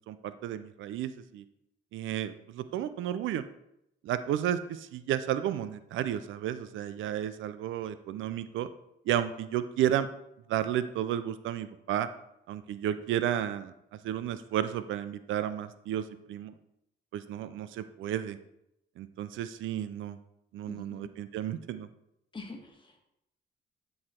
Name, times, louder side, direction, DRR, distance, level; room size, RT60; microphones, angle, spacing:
voice 1, 0.1-1.4 1.9-3.4 4.0-8.7 9.1-10.1 10.5-12.1 12.5-13.7 14.0-16.5 17.1-18.4 19.0-20.2 20.5-21.9, right 11 dB, 80° right, 12 dB, 0.5 m, -32 dB
voice 2, 20.6-21.1 22.3-23.0, left 3 dB, 25° left, 2 dB, 1.5 m, -45 dB
9.6 x 3.2 x 4.3 m, 0.82 s
cardioid pair, 90°, 20 cm